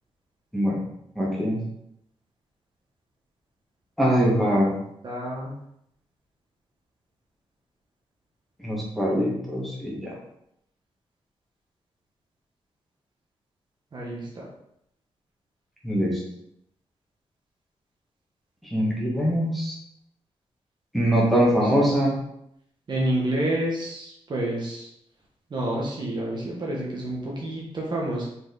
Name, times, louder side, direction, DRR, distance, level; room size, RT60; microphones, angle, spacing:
voice 1, 1.2-1.6 4.0-4.8 8.6-10.2 15.8-16.2 18.6-19.8 20.9-22.2, equal, ahead, -5 dB, 2.1 m, -23 dB
voice 2, 5.0-5.5 13.9-14.5 21.9-22.0 22.9-24.9 25.5-28.3, right 1 dB, 45° right, -3 dB, 1.5 m, -29 dB
6.3 x 4.8 x 4.1 m, 0.75 s
wide cardioid pair, 145°, 11 cm